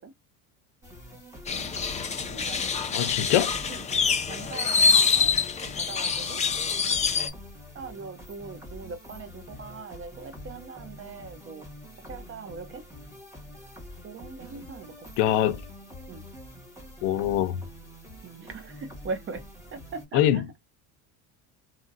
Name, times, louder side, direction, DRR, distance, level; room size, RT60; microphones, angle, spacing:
sound 1, 0.8-20.1, left 1 dB, 5° right, 1.4 m, -46 dB
sound 2, 1.5-7.3, left 5 dB, 15° left, 0.6 m, -25 dB
voice 1, 2.3-2.8 3.7-3.8 4.3-5.3 5.8-6.4 7.2-7.3 7.7-11.7 12.1-12.8 14.0-15.4 16.1-16.3 18.2-19.4 19.7-20.4, right 4 dB, 30° right, 0.7 m, -40 dB
voice 2, 2.9-3.5 15.2-15.6 17.0-17.6 20.1-20.4, left 12 dB, 75° left, 0.7 m, -23 dB
2.8 x 2.7 x 2.5 m
cardioid pair, 120°, 41 cm